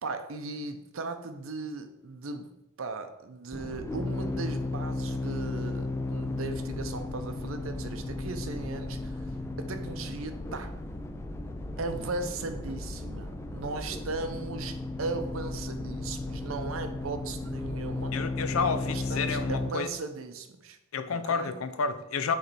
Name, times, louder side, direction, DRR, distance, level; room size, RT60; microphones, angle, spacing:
voice 1, 0.0-2.5 2.8-9.3 9.6-10.8 11.8-18.1 18.8-20.8 21.1-21.5, right 3 dB, 70° right, 8 dB, 0.6 m, -37 dB
sound 1, 3.5-19.7, left 2 dB, 15° left, 0.3 m, -35 dB
voice 2, 18.1-19.9 20.9-22.3, left 5 dB, 80° left, 11 dB, 0.5 m, -30 dB
6.6 x 3.3 x 4.4 m, 0.87 s
head